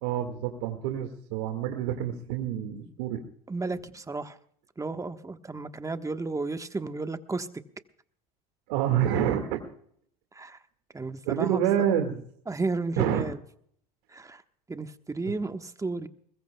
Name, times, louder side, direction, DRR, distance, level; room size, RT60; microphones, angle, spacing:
voice 1, 0.0-3.2 8.7-9.6 11.3-12.2 13.0-13.2 15.3-15.4, right 10 dB, 75° right, 4 dB, 1.9 m, -27 dB
voice 2, 3.5-4.4 4.8-7.5 10.3-10.6 10.9-11.6 12.5-13.4 14.1-14.4 14.7-16.1, right 3 dB, 15° right, 8 dB, 1.2 m, -33 dB
21.5 x 21.0 x 2.3 m, 0.62 s
hypercardioid pair, 75°, 20 cm